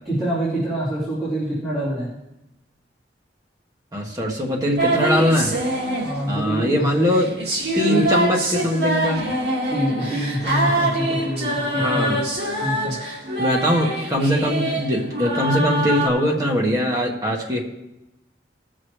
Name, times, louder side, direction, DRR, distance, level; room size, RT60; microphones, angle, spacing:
voice 1, 0.1-2.1 6.0-7.0 7.8-8.1 9.7-12.2 12.6-13.0, right 1 dB, ahead, -14 dB, 3.5 m, -25 dB
voice 2, 3.9-5.5 6.3-7.3 7.7-9.2 11.8-12.2 13.4-17.6, equal, 20° right, -1 dB, 1.5 m, -21 dB
sound 1, 4.8-16.1, right 1 dB, 70° right, 2.1 m, -24 dB
18.0 x 6.3 x 3.1 m, 0.92 s
head